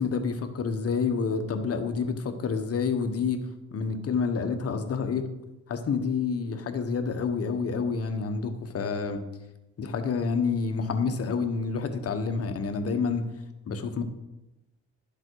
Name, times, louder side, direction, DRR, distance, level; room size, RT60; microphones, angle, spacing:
voice 1, 0.0-3.4 3.7-5.3 5.7-9.2 9.8-13.3 13.7-14.0, left 5 dB, 50° left, 7 dB, 1.3 m, -28 dB
11.0 x 7.5 x 4.7 m, 0.98 s
cardioid pair, 90°, 30 cm